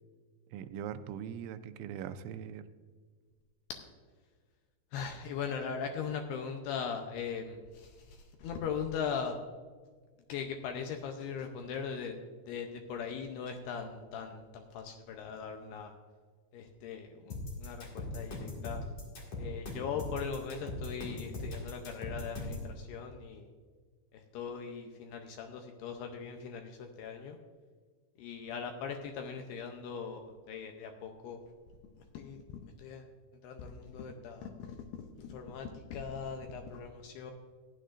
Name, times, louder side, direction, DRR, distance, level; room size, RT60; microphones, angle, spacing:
voice 1, 0.5-2.7, right 9 dB, 85° right, 10 dB, 3.0 m, -41 dB
voice 2, 4.9-9.4 10.3-12.2 12.5-15.9 16.5-18.8 19.4-23.5 24.1-27.4 28.2-31.4 32.1-32.4 32.8-33.1 33.4-37.3, left 6 dB, 80° left, 4 dB, 2.4 m, -40 dB
sound 1, 17.3-22.7, left 2 dB, 45° left, 2.3 m, -39 dB
15.0 x 10.0 x 2.5 m, 1.5 s
omnidirectional pair, 5.3 m